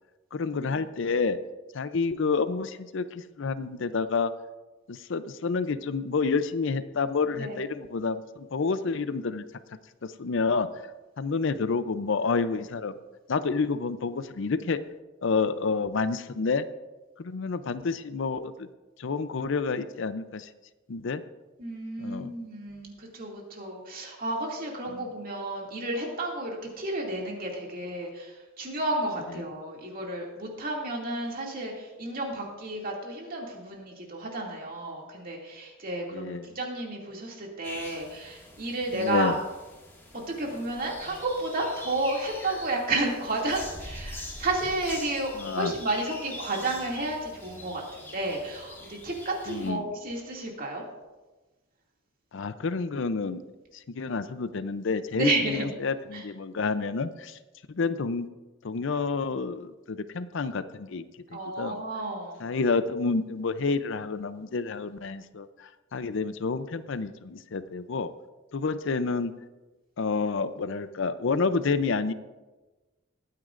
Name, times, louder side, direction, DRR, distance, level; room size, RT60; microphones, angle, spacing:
voice 1, 0.3-1.4 1.7-4.3 4.9-9.5 10.0-10.7 11.2-12.9 13.3-14.8 15.2-16.7 17.2-18.7 19.0-20.5 20.9-21.2 22.0-22.3 24.9-25.0 36.1-36.5 38.9-39.4 45.3-45.7 49.5-49.8 52.3-53.4 53.7-57.4 57.7-58.3 58.6-61.0 61.3-61.8 62.4-68.1 68.5-69.3 70.0-72.1, left 4 dB, 70° left, 12 dB, 0.6 m, -29 dB
voice 2, 21.6-39.4 40.1-50.8 55.1-55.7 56.1-56.2 61.3-62.5, right 2 dB, 45° right, -1 dB, 2.4 m, -32 dB
sound 1, 37.6-49.7, left 1 dB, 10° left, 1.9 m, -44 dB
20.5 x 9.6 x 2.5 m, 1.2 s
head